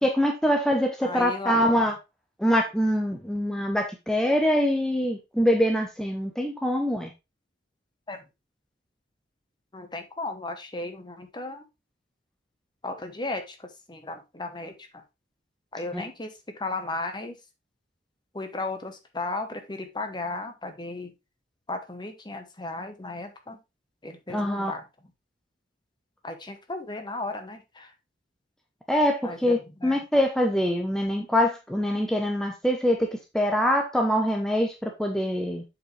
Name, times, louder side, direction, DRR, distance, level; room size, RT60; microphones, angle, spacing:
voice 1, 0.0-1.9 2.4-7.1 15.9-16.0 24.3-24.7 28.9-33.1 33.3-35.6, equal, 5° left, 2 dB, 0.7 m, -24 dB
voice 2, 1.0-1.6 8.1-8.2 9.7-11.6 12.8-15.0 15.7-17.4 18.3-21.1 21.7-23.6 24.0-24.9 26.2-27.9 29.2-30.0, left 2 dB, 25° left, 6 dB, 1.0 m, -35 dB
7.5 x 4.7 x 3.2 m, 0.24 s
head